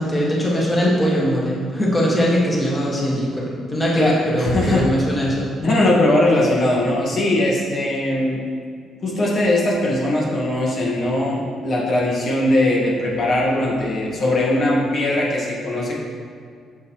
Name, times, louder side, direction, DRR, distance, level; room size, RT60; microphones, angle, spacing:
voice 1, 0.0-5.5, equal, 20° left, -5 dB, 1.7 m, -21 dB
voice 2, 3.9-4.8 5.6-8.4 9.0-15.9, left 1 dB, 50° left, -4 dB, 1.6 m, -20 dB
7.8 x 7.1 x 3.1 m, 2.2 s
cardioid pair, 110°, 0 cm